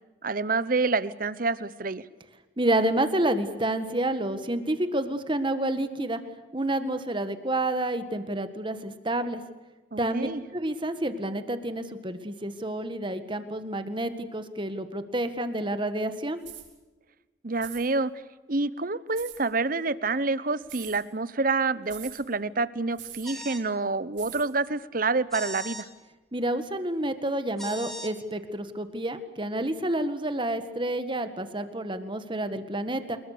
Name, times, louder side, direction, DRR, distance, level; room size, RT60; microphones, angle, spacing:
voice 1, 0.2-2.0 9.9-10.4 17.4-18.1 18.5-25.9, right 3 dB, 50° right, 16 dB, 1.0 m, -28 dB
voice 2, 2.6-6.2 6.5-9.4 10.0-16.4 26.3-33.2, right 1 dB, 25° right, 10 dB, 1.8 m, -29 dB
sound 1, 16.4-16.7 17.6-17.9 19.1-19.4 20.6-21.0 21.9-22.2 23.0-23.3 24.2-24.5, right 13 dB, 80° right, 7.4 m, -42 dB
sound 2, 23.2-23.7 25.3-25.9 27.6-28.1, equal, ahead, 2.5 m, -39 dB
27.5 x 21.5 x 6.8 m, 1.2 s
head